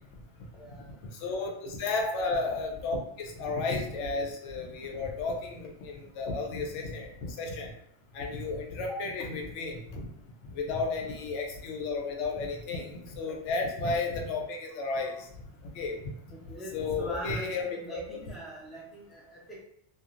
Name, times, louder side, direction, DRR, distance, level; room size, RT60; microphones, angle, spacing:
voice 1, 0.5-1.0 2.0-2.1 8.9-9.1 13.0-13.2 16.3-19.6, right 1 dB, ahead, -5 dB, 0.4 m, -42 dB
voice 2, 1.2-1.5 1.8-7.1 7.4-7.7 8.2-10.0 10.6-12.9 13.1-15.1 15.8-16.0 16.7-17.7, left 3 dB, 75° left, 2 dB, 0.9 m, -32 dB
2.9 x 2.3 x 2.5 m, 0.75 s
omnidirectional pair, 1.3 m